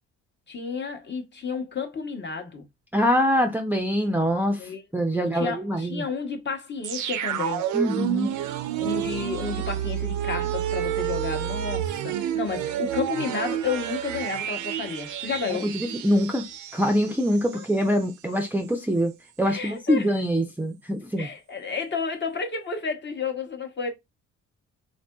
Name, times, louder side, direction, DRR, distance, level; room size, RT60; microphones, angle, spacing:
voice 1, 0.5-2.7 4.6-4.8 5.1-7.7 8.8-15.7 17.5-17.7 19.4-20.1 21.2-23.9, left 5 dB, 35° left, 0.9 m, -31 dB
voice 2, 2.9-6.1 7.7-8.3 15.6-16.4 16.7-19.1 19.4-21.3, equal, 5° right, 0.5 m, -24 dB
sound 1, 6.8-17.7 18.0-18.1, right 11 dB, 80° right, 0.5 m, -30 dB
3.5 x 2.5 x 2.2 m
cardioid pair, 90°, 30 cm